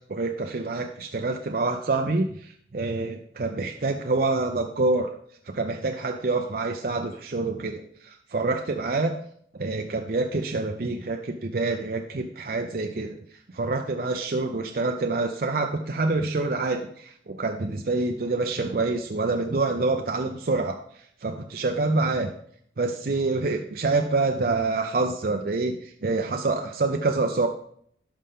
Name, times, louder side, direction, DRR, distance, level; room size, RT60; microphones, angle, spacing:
voice 1, 0.1-5.1 5.5-9.1 9.5-13.2 13.5-20.8 21.2-22.3 22.8-27.5, right 3 dB, 50° right, 4 dB, 0.5 m, -26 dB
11.5 x 5.6 x 3.6 m, 0.65 s
head